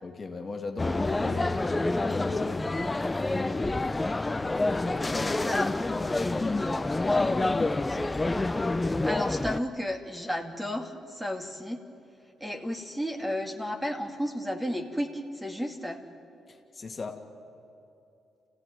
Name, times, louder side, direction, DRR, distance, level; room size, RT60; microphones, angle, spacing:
voice 1, 0.0-2.9 4.7-8.0 16.5-17.3, left 3 dB, 35° left, 3 dB, 1.9 m, -38 dB
sound 1, 0.8-9.6, left 2 dB, 15° left, 0.6 m, -27 dB
voice 2, 9.0-11.8 12.4-16.0, equal, 5° right, 4 dB, 2.3 m, -33 dB
26.5 x 16.5 x 9.3 m, 2.8 s
cardioid pair, 90°, 0 cm